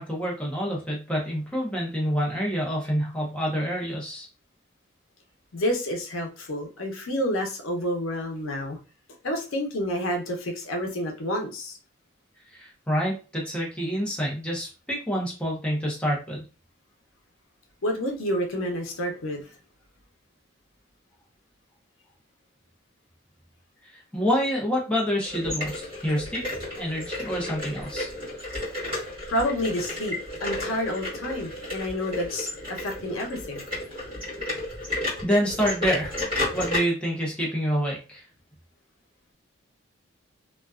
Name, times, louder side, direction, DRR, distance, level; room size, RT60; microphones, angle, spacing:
voice 1, 0.0-4.3 12.5-16.4 23.9-26.4 26.8-28.1 35.2-36.2 36.5-38.2, equal, 5° left, -3 dB, 0.6 m, -27 dB
voice 2, 5.5-8.8 9.2-11.8 17.8-19.5 29.3-33.6, equal, 90° left, 2 dB, 0.6 m, -29 dB
sound 1, 25.2-36.8, left 2 dB, 25° right, 1.2 m, -33 dB
2.4 x 2.2 x 2.3 m, 0.33 s
head